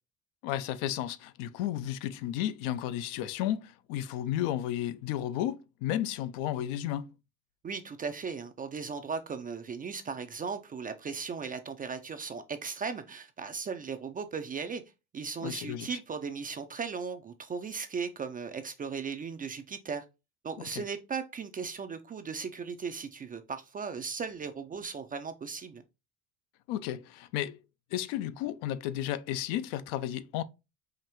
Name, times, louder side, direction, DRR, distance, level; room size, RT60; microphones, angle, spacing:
voice 1, 0.4-7.1 15.4-15.9 20.7-20.8 26.7-27.6 27.9-30.4, left 12 dB, 65° left, 0.5 m, -33 dB
voice 2, 7.6-14.8 15.1-20.0 20.4-25.8, right 5 dB, 20° right, 0.4 m, -37 dB
5.0 x 2.6 x 2.9 m
hypercardioid pair, 75°, 43 cm